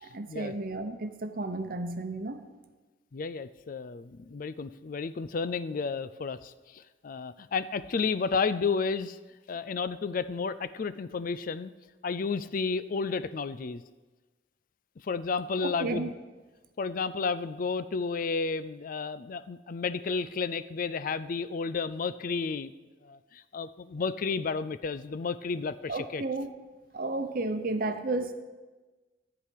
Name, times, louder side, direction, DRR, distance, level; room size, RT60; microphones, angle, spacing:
voice 1, 0.0-2.4 15.6-16.1 25.9-26.5 26.9-28.3, right 2 dB, 50° right, 8 dB, 0.9 m, -32 dB
voice 2, 3.1-9.2 9.5-11.7 12.0-13.8 15.0-16.1 16.8-22.7 23.0-26.2, left 4 dB, 50° left, 15 dB, 0.4 m, -32 dB
14.0 x 4.9 x 8.5 m, 1.3 s
head